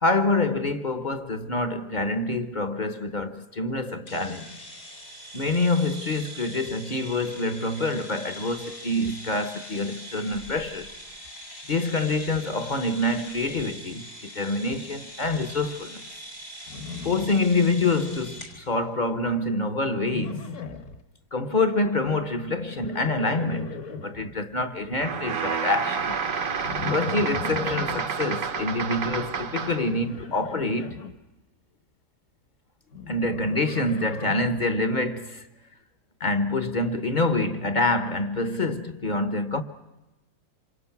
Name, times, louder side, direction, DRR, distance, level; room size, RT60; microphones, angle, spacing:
voice 1, 0.0-4.7 5.3-10.9 11.7-16.0 17.0-20.5 21.3-26.2 26.8-31.0 33.1-35.5 36.2-39.6, left 2 dB, 35° left, 1.0 m, -26 dB
sound 1, 4.1-18.6, equal, 90° left, 4.6 m, -42 dB
Livestock farm animals working animals, 16.7-17.9 18.2-18.7 20.0-21.0 22.6-24.3 26.6-28.0 30.0-31.1 32.9-34.6, left 4 dB, 50° left, 1.5 m, -38 dB
sound 2, 25.0-29.9, right 5 dB, 55° right, 1.4 m, -29 dB
27.0 x 27.0 x 5.9 m
omnidirectional pair, 1.7 m